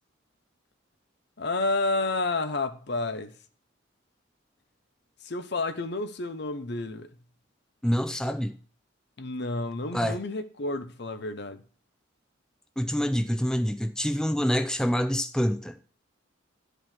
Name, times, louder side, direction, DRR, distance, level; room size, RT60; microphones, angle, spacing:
voice 1, 1.4-3.3 5.2-7.1 9.2-11.6, left 2 dB, 60° left, 0.9 m, -30 dB
voice 2, 7.8-8.5 9.9-10.2 12.8-15.8, equal, 5° left, 0.5 m, -26 dB
12.0 x 5.1 x 5.9 m
head